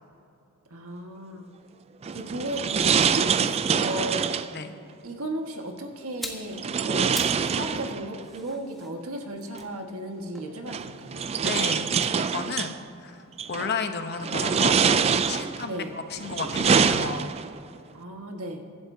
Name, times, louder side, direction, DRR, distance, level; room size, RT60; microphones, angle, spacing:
voice 1, 0.7-1.4 2.1-4.5 5.0-11.2 15.6-16.0 17.9-18.6, right 1 dB, 85° right, 2 dB, 1.6 m, -35 dB
sound 1, 2.0-4.6 6.6-8.2 9.6-9.7 10.7-12.7 13.4-13.8 14.2-15.7 16.2-17.6, right 6 dB, 30° right, 0.3 m, -25 dB
sound 2, 6.0-7.5 7.8-11.1 11.9-13.9 14.2-14.4, equal, ahead, 1.2 m, -43 dB
voice 2, 11.4-11.9 12.2-12.8 13.0-13.2 13.5-14.8 15.1-17.3, left 4 dB, 50° left, 7 dB, 0.9 m, -32 dB
24.0 x 11.5 x 2.8 m, 2.8 s
head